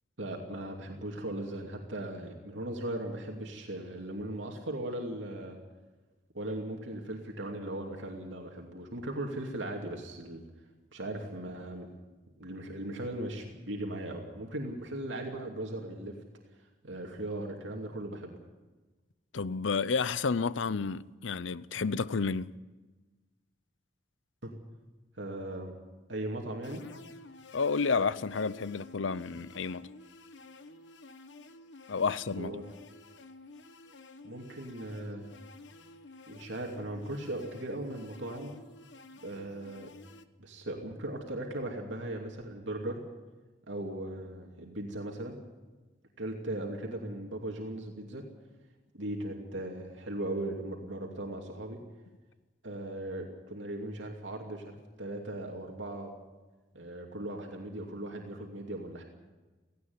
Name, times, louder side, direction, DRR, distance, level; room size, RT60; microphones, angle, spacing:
voice 1, 0.2-5.6 6.3-10.4 10.9-11.9 12.4-16.1 16.8-18.3 24.4-24.5 25.1-25.8 26.1-26.8 32.4-32.6 34.2-35.3 36.3-38.5 39.2-39.9 40.4-43.0 43.7-45.4 46.2-48.2 48.9-51.8 52.6-56.1 56.7-59.0, right 1 dB, 75° right, 2.7 m, -38 dB
voice 2, 19.3-22.5 27.5-29.9 31.9-32.5, left 5 dB, 85° left, 0.7 m, -30 dB
sound 1, 26.6-40.2, left 2 dB, 70° left, 1.2 m, -51 dB
17.5 x 16.5 x 9.6 m
head